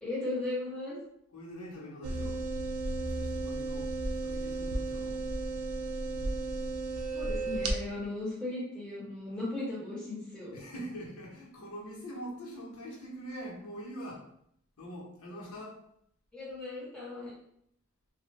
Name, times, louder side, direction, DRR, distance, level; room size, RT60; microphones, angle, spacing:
voice 1, 0.0-1.0 7.1-10.6 16.3-17.3, left 2 dB, 5° left, -8 dB, 0.9 m, -37 dB
voice 2, 1.3-2.4 3.0-3.9 4.2-5.2 10.5-14.2 14.8-15.8, equal, 80° left, -3 dB, 0.9 m, -43 dB
sound 1, 2.0-7.7, right 2 dB, 85° right, 0.4 m, -34 dB
2.2 x 2.0 x 3.2 m, 0.71 s
head